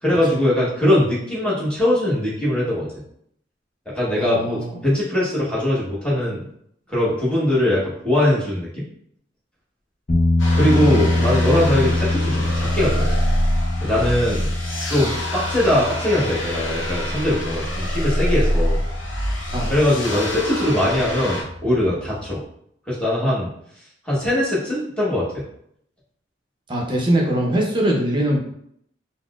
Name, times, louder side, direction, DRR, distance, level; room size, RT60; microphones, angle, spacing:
voice 1, 0.0-2.9 4.0-6.4 6.9-8.8 10.5-13.1 13.8-14.5 14.9-18.8 19.7-22.4 22.9-23.5 24.0-25.4, left 1 dB, 5° left, -8 dB, 1.0 m, -21 dB
voice 2, 4.2-4.8 10.8-11.3 19.5-19.8 26.7-28.4, right 1 dB, 25° right, -1 dB, 0.6 m, -22 dB
sound 1, 10.1-22.4, left 2 dB, 45° left, 0.6 m, -25 dB
sound 2, 10.4-21.4, equal, 85° left, 0.7 m, -26 dB
4.0 x 2.0 x 2.3 m, 0.70 s
head